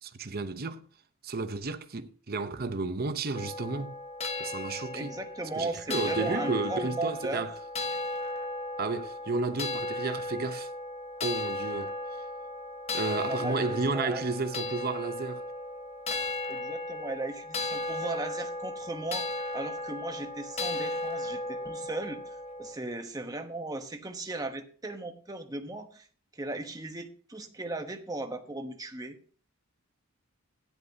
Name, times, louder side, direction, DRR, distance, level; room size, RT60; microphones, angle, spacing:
voice 1, 0.0-0.8 1.2-4.0 4.4-5.2 5.6-7.5 8.8-10.7 11.2-11.9 12.9-15.4, right 3 dB, 45° right, 0.8 m, -32 dB
sound 1, 3.3-22.7, left 2 dB, 30° left, 1.2 m, -35 dB
voice 2, 4.9-7.5 13.3-14.2 16.5-19.3 19.5-26.1 26.3-29.2, right 2 dB, 15° right, 1.1 m, -37 dB
14.0 x 10.5 x 2.8 m
head